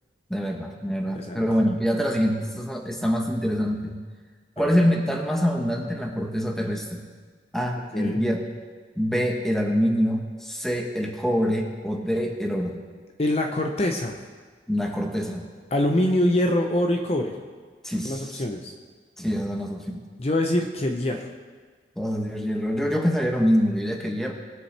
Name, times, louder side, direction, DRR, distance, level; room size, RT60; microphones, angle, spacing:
voice 1, 0.3-4.0 4.6-7.1 7.5-8.4 9.0-12.8 14.7-15.4 17.8-18.4 19.2-20.0 22.0-24.3, equal, ahead, 1 dB, 1.1 m, -25 dB
voice 2, 13.2-14.2 15.7-17.4 18.0-18.7 20.2-21.3, left 1 dB, 35° left, 3 dB, 0.7 m, -24 dB
20.5 x 7.9 x 3.4 m, 1.5 s
head